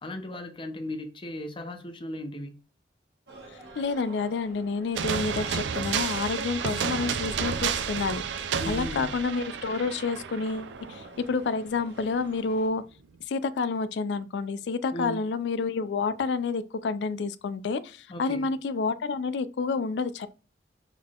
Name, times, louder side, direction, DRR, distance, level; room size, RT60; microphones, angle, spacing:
voice 1, 0.0-2.6 8.6-9.1 14.9-15.2 18.1-18.5, left 1 dB, 30° left, 0.6 m, -36 dB
sound 1, 3.3-12.7, right 2 dB, 65° right, 1.1 m, -49 dB
voice 2, 3.8-12.8 13.3-20.3, left 4 dB, 70° left, 0.4 m, -29 dB
sound 2, 4.9-11.5, right 7 dB, 85° right, 0.4 m, -31 dB
3.6 x 3.6 x 2.3 m
head